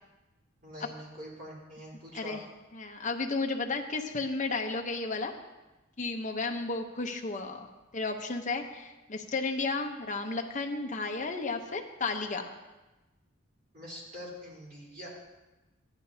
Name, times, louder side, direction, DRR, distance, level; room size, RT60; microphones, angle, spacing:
voice 1, 0.6-2.4 13.7-15.1, equal, 45° right, -6 dB, 3.9 m, -44 dB
voice 2, 2.7-5.3 6.0-7.7 7.9-12.5, left 3 dB, 40° left, 3 dB, 0.9 m, -33 dB
14.0 x 10.5 x 2.8 m, 1.1 s
head